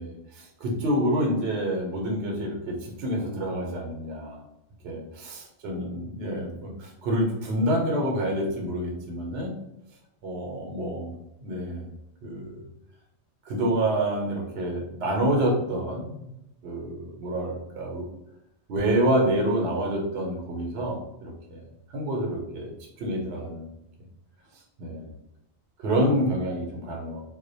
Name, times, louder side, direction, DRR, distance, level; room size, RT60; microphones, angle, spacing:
voice 1, 0.0-4.4 4.8-9.5 10.2-11.2 11.4-11.9 12.2-12.6 13.5-16.3 16.6-18.1 18.7-21.6 21.9-22.7 23.0-23.7 24.8-25.1 25.8-27.2, right 1 dB, 70° right, 0 dB, 0.8 m, -27 dB
2.4 x 2.1 x 2.6 m, 0.85 s
omnidirectional pair, 1.2 m